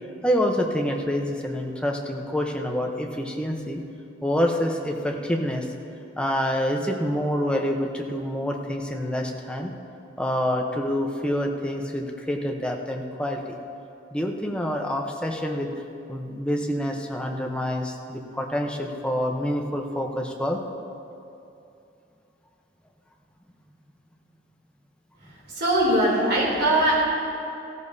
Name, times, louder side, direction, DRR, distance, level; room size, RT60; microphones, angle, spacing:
voice 1, 0.2-3.8 4.2-5.7 6.2-9.7 10.2-13.4 14.1-15.7 16.1-20.6, equal, 5° left, 1 dB, 0.8 m, -27 dB
voice 2, 25.5-27.0, right 1 dB, 60° right, -4 dB, 3.2 m, -21 dB
16.0 x 13.5 x 2.7 m, 2.7 s
head